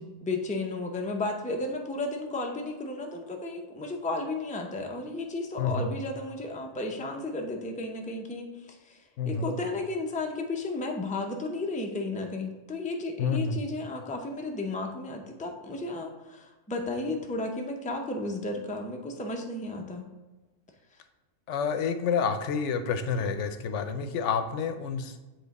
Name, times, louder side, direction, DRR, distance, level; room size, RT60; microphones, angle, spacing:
voice 1, 0.0-20.1, left 2 dB, 10° left, 2 dB, 0.4 m, -33 dB
voice 2, 5.6-5.9 9.2-9.5 13.2-13.6 21.5-25.2, left 6 dB, 70° left, 8 dB, 0.9 m, -29 dB
7.1 x 3.9 x 4.0 m, 1.2 s
omnidirectional pair, 1.3 m